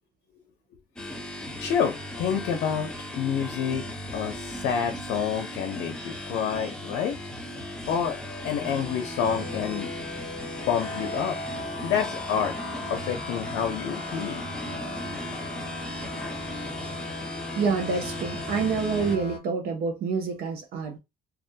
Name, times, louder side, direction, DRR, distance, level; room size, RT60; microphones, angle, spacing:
sound 1, 1.0-19.2, left 1 dB, 5° left, 0.5 m, -37 dB
voice 1, 1.5-2.9 3.1-3.8 4.1-7.2 7.9-9.9 10.7-11.4 11.8-12.5 12.9-14.4, left 7 dB, 85° left, 0.5 m, -28 dB
sound 2, 8.6-19.4, left 2 dB, 40° left, 0.8 m, -38 dB
voice 2, 17.5-21.0, right 5 dB, 65° right, 0.6 m, -27 dB
2.3 x 2.1 x 2.6 m
cardioid pair, 110°, 17 cm